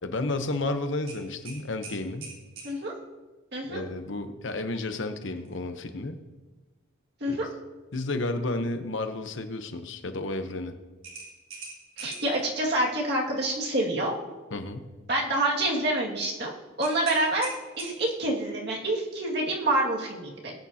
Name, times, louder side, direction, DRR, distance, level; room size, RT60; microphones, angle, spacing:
voice 1, 0.0-2.3 3.7-6.2 7.3-7.4 7.9-10.7 14.5-14.9, left 2 dB, 65° left, 8 dB, 0.9 m, -32 dB
sound 1, 1.1-2.7 5.4-5.6 6.0-6.1 11.0-12.4 16.8-18.3, right 4 dB, 75° right, 3.8 m, -42 dB
voice 2, 3.5-3.8 7.2-7.5 12.0-14.1 15.1-16.5 16.8-20.5, right 1 dB, 50° right, -2 dB, 2.1 m, -27 dB
19.5 x 8.7 x 2.9 m, 1.2 s
head